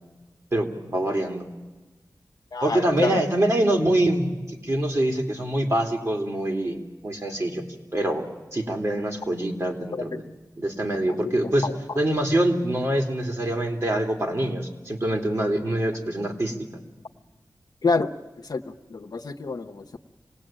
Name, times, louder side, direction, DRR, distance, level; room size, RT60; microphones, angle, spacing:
voice 1, 0.5-1.5 2.6-7.6 7.9-8.2 8.5-10.2 10.6-11.7 11.9-16.6, right 1 dB, 45° right, 2 dB, 3.0 m, -25 dB
voice 2, 2.5-3.2 9.9-10.0 11.3-11.7 17.8-18.1 18.5-18.6 18.9-20.0, left 4 dB, 70° left, 3 dB, 0.9 m, -27 dB
26.5 x 18.5 x 8.9 m, 1.2 s
wide cardioid pair, 90°, 7 cm